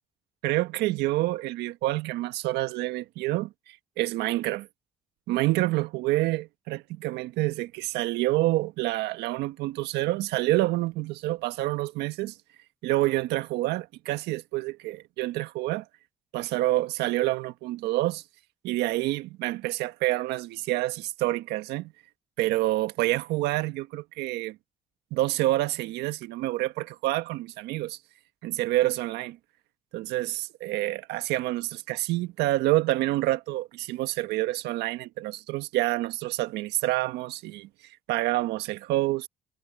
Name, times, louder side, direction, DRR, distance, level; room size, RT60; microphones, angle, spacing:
voice 1, 0.4-4.7 5.3-12.3 12.8-15.8 16.3-18.2 18.6-21.9 22.4-24.6 25.1-28.0 28.4-29.4 29.9-37.7 38.1-39.3, right 17 dB, 80° right, 1.6 m, -28 dB
hypercardioid pair, 55°, 17 cm